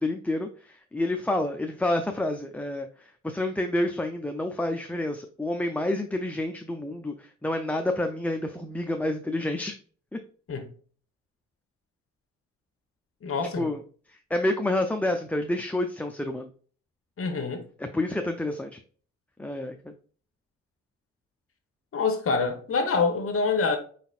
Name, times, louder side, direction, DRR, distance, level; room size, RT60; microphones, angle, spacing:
voice 1, 0.0-2.9 3.2-9.7 10.1-10.2 13.6-13.8 14.3-16.5 17.8-18.8 19.4-19.8, left 1 dB, 5° left, 0.5 m, -28 dB
voice 2, 13.2-13.7 17.2-17.6 21.9-23.8, left 4 dB, 45° left, 1.2 m, -26 dB
5.2 x 4.1 x 2.4 m
cardioid pair, 90°, 30 cm